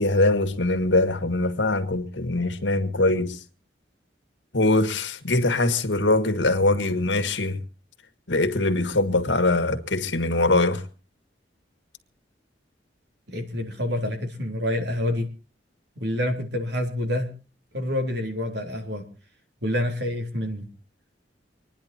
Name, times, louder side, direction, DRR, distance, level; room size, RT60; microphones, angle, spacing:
voice 1, 0.0-3.4 4.5-7.6 8.3-10.8, left 2 dB, 90° left, 1.9 m, -22 dB
voice 2, 13.3-15.3 16.0-17.3 17.7-19.0 19.6-20.7, left 1 dB, 70° right, 3.7 m, -27 dB
25.5 x 10.5 x 4.4 m
head